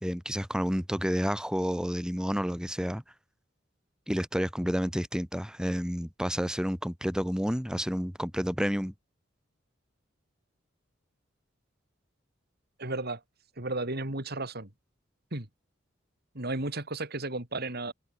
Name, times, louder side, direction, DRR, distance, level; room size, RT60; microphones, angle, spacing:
voice 1, 0.0-3.0 4.1-8.9, equal, 5° right, 3.3 m, -30 dB
voice 2, 12.8-13.2 13.6-14.7 15.3-15.5 16.4-17.9, right 2 dB, 55° right, 3.7 m, -33 dB
head